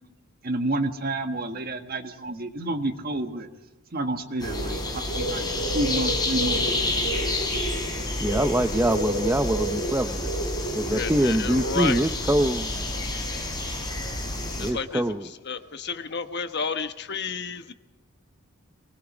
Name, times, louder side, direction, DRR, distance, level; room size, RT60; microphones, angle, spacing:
voice 1, 0.4-3.5 3.9-4.8 5.2-7.1, right 2 dB, 45° right, 6 dB, 1.6 m, -30 dB
sound 1, 4.4-14.7, left 1 dB, 20° left, 4.9 m, -28 dB
voice 2, 8.2-10.3 10.8-12.7 14.5-15.3, right 1 dB, 10° right, 8 dB, 0.7 m, -24 dB
voice 3, 10.9-12.0 14.6-15.0 15.4-17.7, left 5 dB, 55° left, 9 dB, 1.1 m, -31 dB
23.5 x 20.0 x 6.2 m, 1.1 s
head